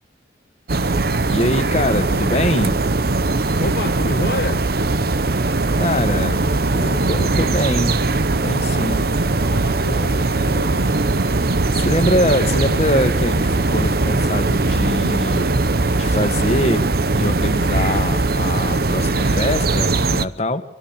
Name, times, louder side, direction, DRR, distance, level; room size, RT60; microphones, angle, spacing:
sound 1, 0.7-20.3, right 2 dB, 55° right, 0.9 m, -20 dB
voice 1, 1.3-2.8 5.7-6.4 6.7-8.0 8.3-9.1 11.7-15.5 15.9-16.8 17.1-20.6, left 1 dB, 35° left, 1.9 m, -23 dB
voice 2, 3.6-4.7 9.2-10.9, left 2 dB, 60° left, 1.3 m, -29 dB
26.0 x 22.0 x 7.5 m
head